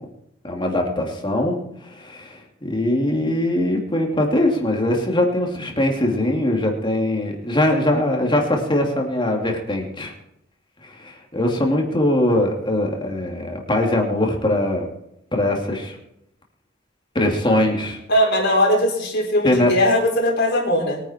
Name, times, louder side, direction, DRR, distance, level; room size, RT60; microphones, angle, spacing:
voice 1, 0.4-1.6 1.8-10.1 10.8-14.9 15.3-16.0 17.1-18.0 19.4-19.7, left 1 dB, 25° left, 1 dB, 2.9 m, -21 dB
voice 2, 18.1-21.0, left 1 dB, 60° left, -2 dB, 4.4 m, -19 dB
22.0 x 9.9 x 4.6 m, 0.79 s
head